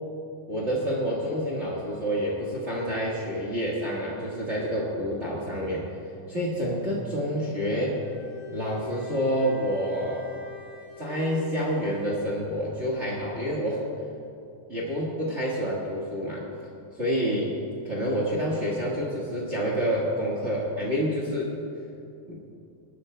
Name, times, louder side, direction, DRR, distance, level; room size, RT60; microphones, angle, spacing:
voice 1, 0.5-5.9 6.3-8.0 8.5-10.2 11.0-13.8 14.7-16.4 17.0-17.5 17.8-21.6 22.3-22.4, equal, 45° right, -4 dB, 0.9 m, -28 dB
Bowed string instrument, 7.9-12.4, left 5 dB, 65° left, 2.4 m, -44 dB
20.5 x 11.5 x 2.2 m, 2.5 s
omnidirectional pair, 3.7 m